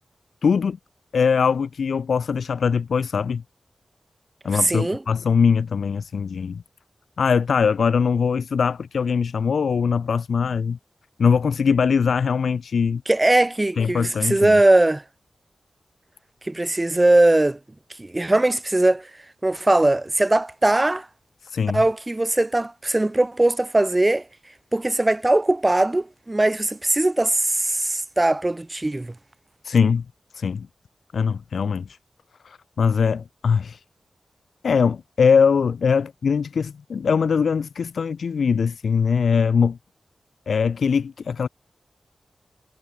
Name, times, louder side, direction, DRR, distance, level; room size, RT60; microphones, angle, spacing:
voice 1, 0.4-0.8 1.1-3.4 4.4-6.6 7.2-10.8 11.2-13.0 13.8-14.6 21.4-21.8 29.6-30.0 30.3-30.7 31.1-32.0 32.4-33.8 34.6-39.8 40.5-41.5, left 6 dB, 80° left, 0.4 m, -21 dB
voice 2, 4.5-5.0 13.1-15.0 16.5-17.6 18.0-19.1 19.4-21.1 21.7-24.2 24.7-29.1, right 2 dB, 25° right, 0.6 m, -20 dB
cardioid pair, 40°, 0 cm